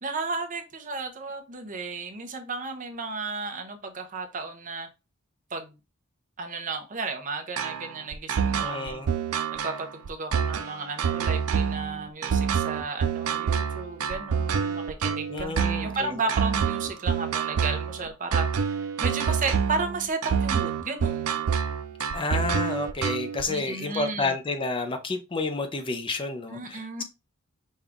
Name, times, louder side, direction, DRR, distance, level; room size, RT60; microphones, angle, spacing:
voice 1, 0.0-4.9 5.5-5.7 6.4-9.0 9.5-21.4 23.5-24.4 26.5-27.0, right 3 dB, 40° right, 5 dB, 0.7 m, -33 dB
sound 1, 7.6-23.4, right 7 dB, 80° right, 0.5 m, -27 dB
voice 2, 8.6-9.1 15.3-16.1 22.1-27.0, left 3 dB, 25° left, 6 dB, 0.5 m, -30 dB
5.4 x 2.4 x 3.5 m, 0.26 s
head